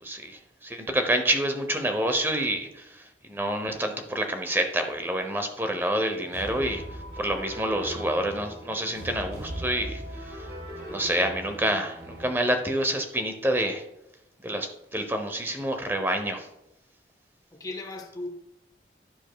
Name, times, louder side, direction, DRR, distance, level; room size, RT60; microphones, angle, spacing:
voice 1, 0.0-3.0 3.3-6.8 7.2-10.5 10.9-13.8 14.4-16.5, right 1 dB, 15° right, 0.7 m, -28 dB
sound 1, 6.3-12.3, equal, 70° right, 2.5 m, -39 dB
voice 2, 11.0-11.3 17.5-18.3, left 2 dB, 20° left, 0.6 m, -37 dB
10.0 x 6.9 x 2.3 m
head